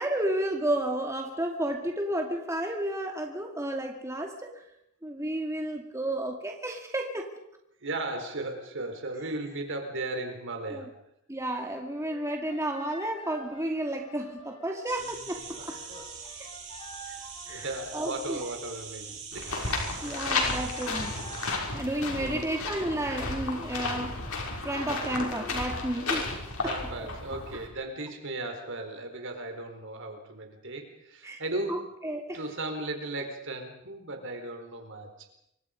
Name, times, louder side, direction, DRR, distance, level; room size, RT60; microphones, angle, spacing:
voice 1, 0.0-4.5 5.0-7.3 10.7-10.8 11.3-15.4 15.7-15.8 16.4-16.5 17.1-17.2 17.5-18.4 20.0-21.2 21.7-24.2 24.6-26.4 27.5-27.6 31.2-31.4 31.7-32.4, right 1 dB, 15° right, 2 dB, 2.3 m, -32 dB
voice 2, 7.8-10.9 15.6-15.8 17.5-20.1 22.2-22.7 26.6-31.9 32.3-35.3, right 2 dB, 60° right, 5 dB, 4.4 m, -36 dB
sound 1, 12.0-18.2 20.0-26.2, left 1 dB, 25° left, 7.3 m, -48 dB
sound 2, 14.9-21.6, right 6 dB, 35° right, 7.7 m, -43 dB
sound 3, 19.3-27.7, left 3 dB, 75° left, 6.0 m, -33 dB
27.5 x 24.0 x 5.3 m, 0.79 s
head